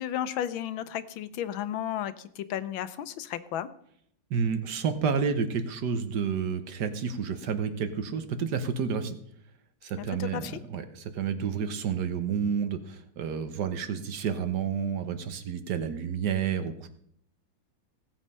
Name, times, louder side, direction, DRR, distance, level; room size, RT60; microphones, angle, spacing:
voice 1, 0.0-3.7 10.0-10.6, left 11 dB, 90° left, 13 dB, 1.6 m, -33 dB
voice 2, 4.3-9.2 9.8-16.9, right 6 dB, 60° right, 9 dB, 1.5 m, -30 dB
17.0 x 7.5 x 5.5 m, 0.68 s
omnidirectional pair, 2.1 m